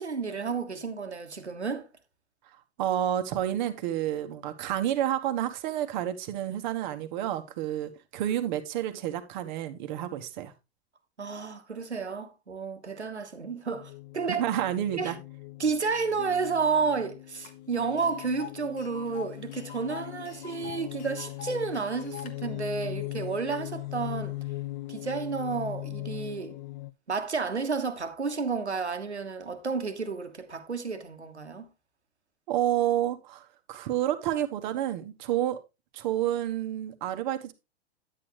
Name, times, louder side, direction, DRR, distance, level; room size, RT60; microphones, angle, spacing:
voice 1, 0.0-1.9 11.2-14.4 14.9-15.1 15.6-24.4 24.9-26.6 27.1-31.7, right 5 dB, 85° right, 1.4 m, -31 dB
voice 2, 2.8-10.5 14.4-15.2 32.5-35.6 35.9-37.5, right 11 dB, 45° right, 1.3 m, -29 dB
sound 1, 13.7-26.9, left 18 dB, 45° left, 0.7 m, -40 dB
Tick, 17.4-17.5 17.8-22.3, left 8 dB, 25° left, 1.1 m, -45 dB
9.8 x 8.6 x 3.0 m
figure-of-eight pair, 105°, 33 cm